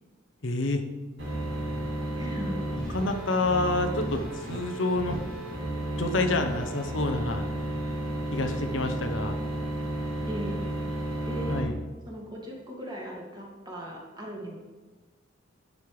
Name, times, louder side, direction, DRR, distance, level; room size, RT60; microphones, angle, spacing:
voice 1, 0.4-0.8 2.9-5.2 5.9-7.5 8.3-9.4 11.5-11.7, left 2 dB, 70° left, 5 dB, 0.9 m, -28 dB
sound 1, 1.2-11.6, right 1 dB, 70° right, 3.2 m, -32 dB
voice 2, 2.2-2.6 10.3-10.7 11.3-11.6 12.1-14.5, equal, 20° right, -2 dB, 2.2 m, -37 dB
11.5 x 5.5 x 4.8 m, 1.3 s
head